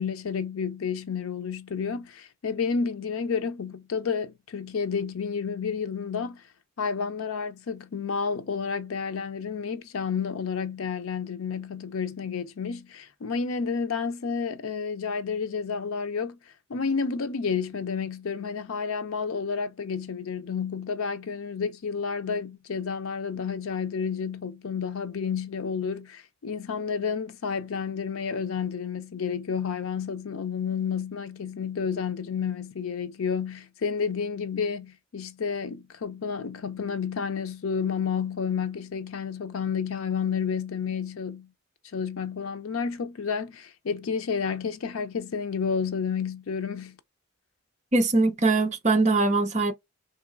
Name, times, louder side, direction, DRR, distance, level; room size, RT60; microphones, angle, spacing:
voice 1, 0.0-6.4 6.8-16.4 16.7-41.5 41.9-47.0, left 6 dB, 75° left, 0.5 m, -30 dB
voice 2, 47.9-49.7, right 3 dB, 35° right, 0.7 m, -22 dB
3.0 x 2.7 x 2.4 m
head